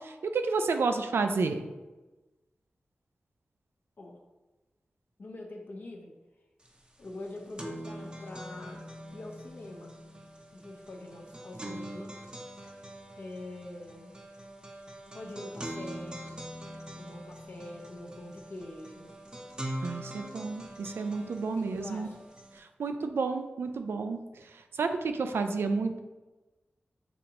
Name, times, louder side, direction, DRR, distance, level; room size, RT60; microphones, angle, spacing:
voice 1, 0.0-1.7 19.8-22.1 22.5-26.0, right 4 dB, 90° right, 7 dB, 0.4 m, -31 dB
voice 2, 5.2-6.1 7.0-10.0 10.5-12.1 13.2-14.2 15.1-16.3 17.0-19.1 21.5-22.2, left 2 dB, 60° left, 0 dB, 0.7 m, -44 dB
sound 1, 6.7-6.8 7.1-22.6, right 1 dB, 25° right, 0.6 m, -43 dB
6.9 x 2.5 x 2.9 m, 1.1 s
wide cardioid pair, 85°, 4 cm